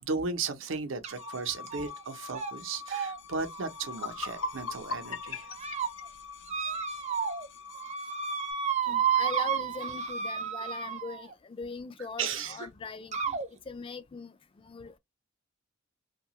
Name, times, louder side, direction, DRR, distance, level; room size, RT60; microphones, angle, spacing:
voice 1, 0.0-5.4 6.6-6.8 12.2-12.7, right 4 dB, 75° right, 0.7 m, -35 dB
sound 1, 1.0-1.3 1.7-2.0 2.3-2.5 2.9-4.8 5.3-5.9 6.5-7.5 7.7-11.3 12.3-12.4 13.1-13.5, right 7 dB, 35° right, 0.5 m, -32 dB
sound 2, 1.1-8.5, left 6 dB, 65° left, 0.8 m, -46 dB
ghostly tickles, 3.9-7.0, left 3 dB, 90° left, 0.5 m, -38 dB
voice 2, 8.8-13.4 13.7-14.3 14.6-15.0, left 4 dB, 25° left, 0.3 m, -41 dB
2.7 x 2.3 x 2.9 m
head